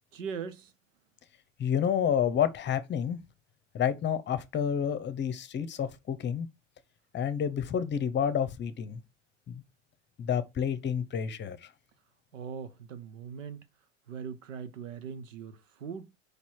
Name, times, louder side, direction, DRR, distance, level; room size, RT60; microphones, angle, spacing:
voice 1, 0.1-0.7 12.3-13.6 14.1-16.2, right 6 dB, 80° right, 1.1 m, -40 dB
voice 2, 1.6-3.2 3.7-6.5 7.1-9.0 9.5-9.6 10.2-11.7, left 8 dB, 30° left, 0.9 m, -29 dB
5.1 x 4.2 x 4.6 m
hypercardioid pair, 85°, 38 cm